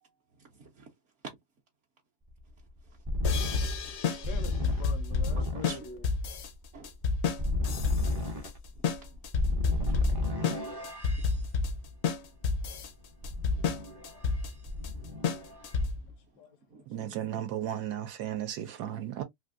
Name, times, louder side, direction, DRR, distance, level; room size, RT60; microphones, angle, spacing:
voice 1, 0.0-0.9 2.6-3.0 3.8-4.0 5.3-5.8 6.1-6.2 6.7-7.0 8.7-9.3 9.9-10.0 11.2-11.4 14.2-14.4 15.0-15.5 15.8-16.9 18.6-18.8, right 4 dB, 55° right, 0.8 m, -53 dB
sound 1, 2.3-11.3 13.2-14.4 14.7-15.8, left 2 dB, 40° right, 0.3 m, -33 dB
sound 2, 3.2-16.1, left 4 dB, 65° left, 0.7 m, -31 dB
voice 2, 4.3-6.0 16.4-16.5, left 5 dB, 85° left, 1.2 m, -44 dB
voice 3, 16.9-19.2, right 11 dB, 75° right, 1.1 m, -35 dB
3.3 x 2.6 x 2.4 m
omnidirectional pair, 1.7 m